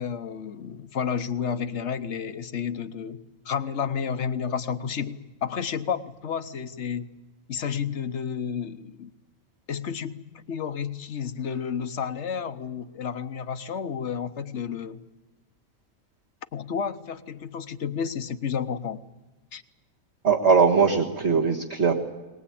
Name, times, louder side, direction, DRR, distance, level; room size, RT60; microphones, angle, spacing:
voice 1, 0.0-3.2 3.4-7.1 7.5-9.1 9.7-10.2 10.5-15.0 16.5-19.0 19.5-19.6, left 7 dB, 60° left, 11 dB, 1.2 m, -31 dB
voice 2, 20.2-21.9, right 5 dB, 55° right, -3 dB, 1.9 m, -20 dB
22.0 x 19.5 x 8.6 m, 1.1 s
omnidirectional pair, 1.4 m